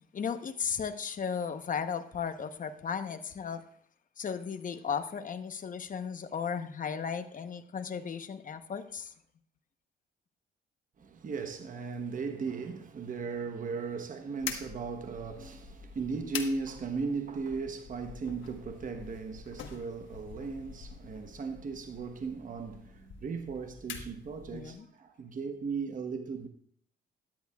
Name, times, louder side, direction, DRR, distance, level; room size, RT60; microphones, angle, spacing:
voice 1, 0.1-3.6 4.2-9.1 24.5-24.8, left 6 dB, 40° left, 0.9 m, -35 dB
voice 2, 11.0-26.5, right 4 dB, 40° right, 1.1 m, -37 dB
sound 1, 14.4-24.7, left 7 dB, 70° left, 1.3 m, -45 dB
13.0 x 10.5 x 2.3 m
cardioid pair, 90°, 20 cm